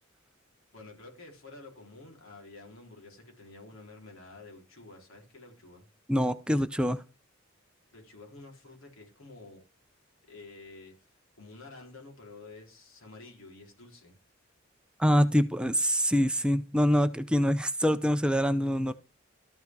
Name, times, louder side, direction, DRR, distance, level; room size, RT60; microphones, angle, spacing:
voice 1, 0.7-5.9 7.9-9.6 10.3-10.9 11.4-14.1, left 3 dB, 85° left, 4.2 m, -50 dB
voice 2, 6.1-7.0 15.0-18.9, equal, 5° right, 0.5 m, -25 dB
13.0 x 5.9 x 4.7 m
head